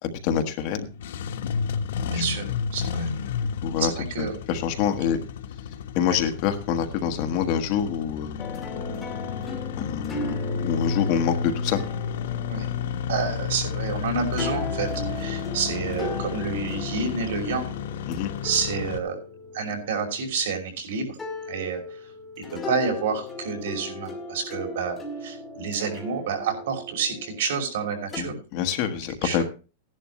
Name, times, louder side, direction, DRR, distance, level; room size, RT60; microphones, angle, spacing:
voice 1, 0.0-0.9 2.0-2.2 3.6-3.9 4.2-5.2 5.9-8.4 9.8-10.4 10.6-11.8 18.1-18.3 28.2-29.4, left 8 dB, 35° left, 5 dB, 1.3 m, -26 dB
Engine starting, 0.9-19.0, left 6 dB, 65° left, 1.1 m, -31 dB
voice 2, 2.1-3.1 3.8-4.4 5.1-5.2 6.1-6.2 12.5-12.7 13.1-17.8 18.4-19.2 19.5-21.2 21.5-22.1 22.5-28.4 29.2-29.4, right 5 dB, 70° right, 3 dB, 5.5 m, -29 dB
sound 1, 8.4-20.7 21.2-28.2, left 2 dB, 10° left, 1.9 m, -37 dB
16.0 x 11.0 x 3.1 m, 0.32 s
supercardioid pair, 180°, 0 cm